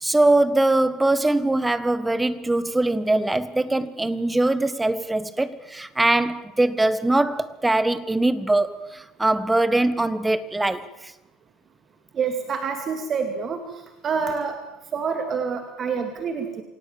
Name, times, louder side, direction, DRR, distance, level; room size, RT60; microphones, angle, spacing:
voice 1, 0.0-11.1, right 2 dB, 10° right, 1.5 m, -22 dB
voice 2, 12.1-13.6 14.0-14.6 14.9-16.6, right 5 dB, 35° right, 2.4 m, -27 dB
27.0 x 18.0 x 7.2 m
figure-of-eight pair, 65°, 0 cm